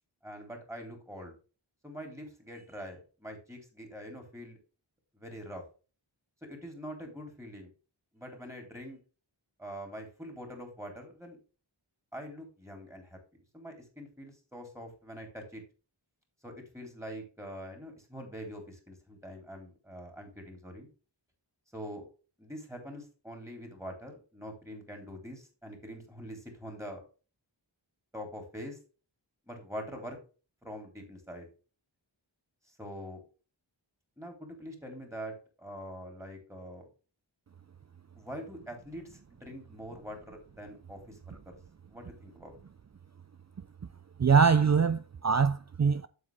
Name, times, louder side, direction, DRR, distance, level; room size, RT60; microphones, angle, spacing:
voice 1, 0.2-1.3 1.8-4.6 5.1-5.6 6.5-7.7 8.1-9.0 9.6-11.4 12.1-13.2 13.5-15.6 16.4-20.9 21.7-22.1 22.4-27.0 28.1-28.8 29.5-30.2 30.6-31.5 32.7-33.2 34.2-36.9 38.1-41.6 41.9-42.6, equal, 5° right, 3.9 m, -44 dB
voice 2, 44.2-46.1, right 5 dB, 40° right, 0.4 m, -23 dB
8.1 x 7.6 x 3.5 m
wide cardioid pair, 55°, 46 cm